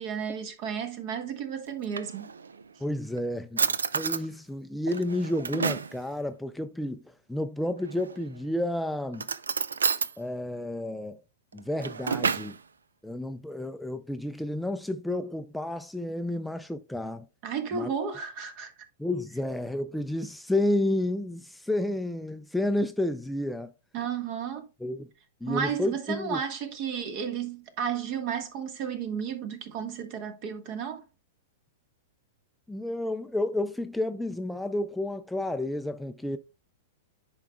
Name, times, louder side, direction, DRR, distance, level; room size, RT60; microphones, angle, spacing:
voice 1, 0.0-2.3 17.4-18.7 23.9-24.7 25.5-31.0, right 7 dB, 45° right, 1.5 m, -33 dB
Drawer open or close, 1.7-2.6 3.2-3.3 3.6-4.3 4.9-6.0 7.8-8.4 9.1-10.1 11.5-12.6, right 5 dB, 85° right, 0.4 m, -30 dB
voice 2, 2.8-3.7 3.9-9.3 10.2-11.2 11.5-12.6 13.0-17.3 17.7-17.9 19.0-23.7 24.8-25.1 25.4-26.4 32.7-36.4, left 1 dB, 5° left, 0.5 m, -31 dB
10.5 x 4.8 x 2.3 m
hypercardioid pair, 110°, 0 cm